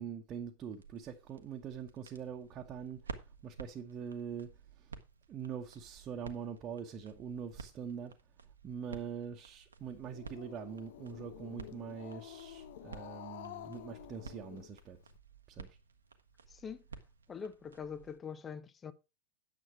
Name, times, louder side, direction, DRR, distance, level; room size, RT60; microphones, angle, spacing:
voice 1, 0.0-3.0 3.4-4.5 4.8-4.9 5.3-8.1 8.6-15.0 15.6-15.8, right 7 dB, 30° right, 1.2 m, -43 dB
sound 1, 0.7-18.2, right 5 dB, 75° right, 1.1 m, -53 dB
Growling, 9.8-15.2, left 12 dB, 55° left, 0.7 m, -50 dB
voice 2, 16.5-16.8 17.3-18.9, left 6 dB, 20° left, 0.7 m, -43 dB
9.5 x 7.3 x 4.7 m
figure-of-eight pair, 90°, 0 cm